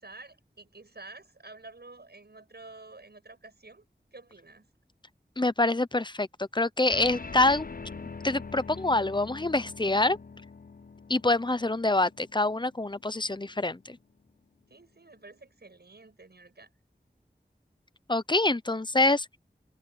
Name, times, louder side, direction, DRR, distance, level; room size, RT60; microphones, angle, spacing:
voice 1, 0.0-3.8 4.1-4.7 14.7-16.7, right 3 dB, 75° right, 8.0 m, -49 dB
voice 2, 5.4-7.7 8.2-10.2 11.1-14.0 18.1-19.4, left 2 dB, 25° left, 0.8 m, -26 dB
sound 1, 6.9-13.7, left 4 dB, 55° left, 0.7 m, -44 dB
wide cardioid pair, 45°, 17 cm